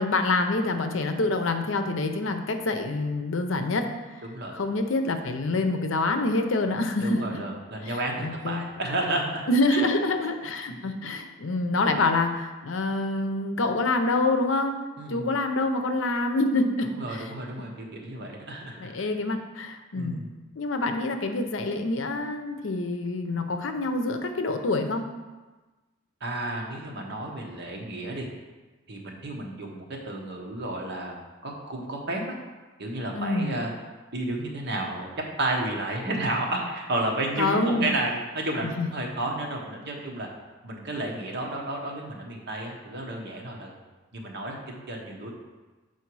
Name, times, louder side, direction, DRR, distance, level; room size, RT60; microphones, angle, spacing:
voice 1, 0.0-3.9 4.5-7.4 7.8-8.6 9.5-14.8 15.1-17.3 18.8-20.2 20.6-25.1 33.1-33.5 37.4-37.9 38.6-38.9, left 2 dB, 70° left, 6 dB, 0.6 m, -26 dB
voice 2, 4.2-4.5 7.0-9.4 9.7-9.9 10.7-10.9 15.0-15.3 16.9-19.1 19.9-20.3 26.2-28.3 28.9-31.1 31.4-32.2 32.8-33.7 34.1-35.1 35.4-40.3 40.6-43.7 44.1-45.3, right 1 dB, 60° right, 0 dB, 1.2 m, -32 dB
7.0 x 4.6 x 4.7 m, 1.2 s
head